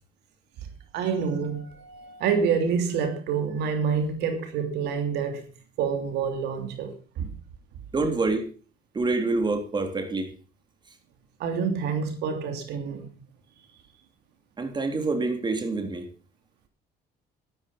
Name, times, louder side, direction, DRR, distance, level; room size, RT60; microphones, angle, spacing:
voice 1, 0.9-5.5 5.8-7.3 11.4-13.1, right 6 dB, 80° right, 2.9 m, -27 dB
voice 2, 7.9-8.5 8.9-10.3 14.6-16.1, right 3 dB, 25° right, 3.6 m, -26 dB
13.5 x 12.0 x 5.6 m
cardioid pair, 110°, 17 cm